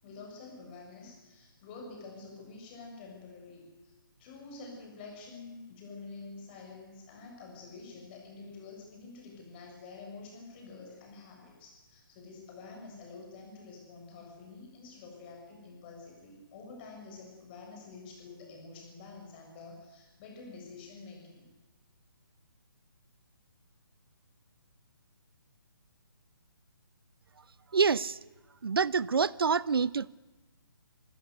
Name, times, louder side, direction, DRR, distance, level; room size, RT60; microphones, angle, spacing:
voice 1, 0.0-3.9 4.2-21.5, left 3 dB, 25° left, 7.2 m, -48 dB
voice 2, 27.7-28.2 28.6-30.1, right 5 dB, 85° right, 0.6 m, -26 dB
26.5 x 15.0 x 8.1 m
hypercardioid pair, 160°, 12 cm